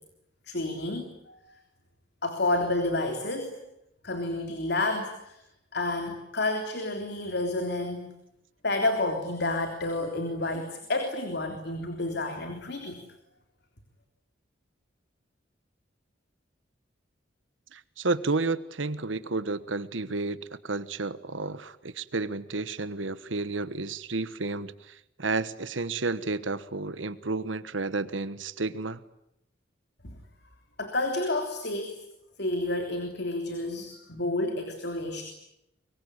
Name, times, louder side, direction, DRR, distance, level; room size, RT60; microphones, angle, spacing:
voice 1, 0.5-1.4 2.2-3.5 4.0-5.4 5.7-8.1 8.6-13.0 30.0-30.1 30.8-32.0 32.4-35.2, left 2 dB, 60° left, 5 dB, 3.5 m, -30 dB
voice 2, 17.7-29.0, right 3 dB, 80° right, 15 dB, 1.3 m, -31 dB
24.0 x 23.5 x 9.9 m, 0.82 s
head